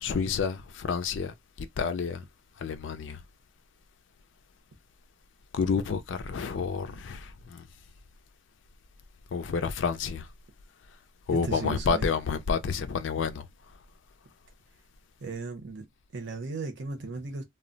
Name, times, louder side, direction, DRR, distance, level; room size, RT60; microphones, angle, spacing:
voice 1, 0.0-2.2 2.6-3.2 5.5-7.6 9.3-10.3 11.3-13.5, left 5 dB, 70° left, 0.4 m, -29 dB
voice 2, 11.4-12.1 15.2-15.9 16.1-17.4, right 3 dB, 65° right, 0.7 m, -36 dB
2.2 x 2.0 x 3.8 m
head